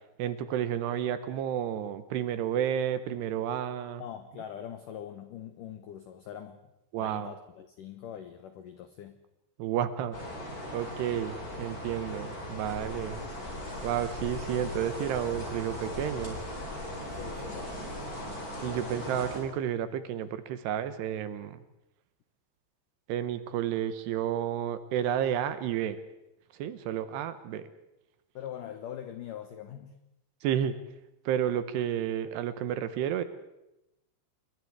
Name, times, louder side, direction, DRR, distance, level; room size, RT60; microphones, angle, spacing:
voice 1, 0.2-4.0 6.9-7.3 9.6-10.2 10.7-13.2 13.8-16.4 18.6-21.6 23.1-26.0 26.5-27.7 30.4-30.8 31.3-33.2, right 10 dB, 75° right, 12 dB, 2.9 m, -31 dB
voice 2, 4.0-6.7 7.0-9.2 17.1-17.8 28.3-30.0, left 9 dB, 80° left, 9 dB, 1.9 m, -43 dB
sound 1, 10.1-19.4, left 1 dB, 20° left, 5.0 m, -38 dB
28.0 x 22.0 x 4.8 m, 0.90 s
omnidirectional pair, 5.3 m